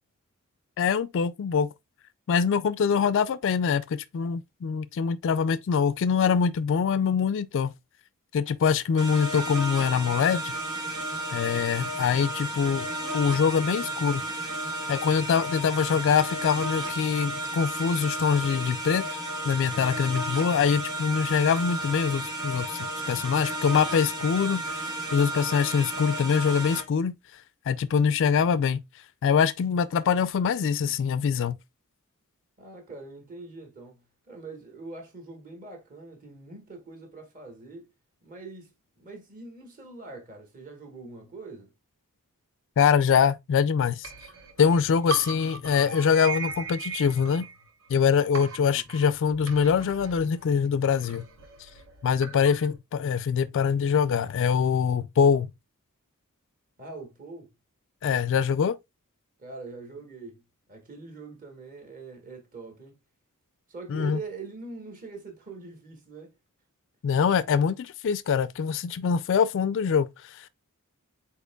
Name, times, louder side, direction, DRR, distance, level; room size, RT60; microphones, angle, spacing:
voice 1, 0.8-1.7 2.3-7.7 8.3-10.5 11.3-12.9 13.1-14.2 14.9-19.1 19.4-24.8 25.1-27.1 27.7-28.8 29.2-31.6 42.8-44.1 44.6-47.5 47.9-51.2 52.0-55.5 58.0-58.8 63.9-64.2 67.0-70.5, left 6 dB, 60° left, 0.3 m, -24 dB
sound 1, 9.0-26.8, right 1 dB, 20° right, 1.6 m, -33 dB
voice 2, 32.6-37.9 38.2-41.7 48.6-48.8 56.8-57.5 59.4-60.4 60.7-63.0 63.7-66.3, right 3 dB, 40° right, 1.5 m, -43 dB
sound 2, 44.0-48.0 48.3-52.7, right 5 dB, 65° right, 1.2 m, -39 dB
8.0 x 2.9 x 2.2 m
head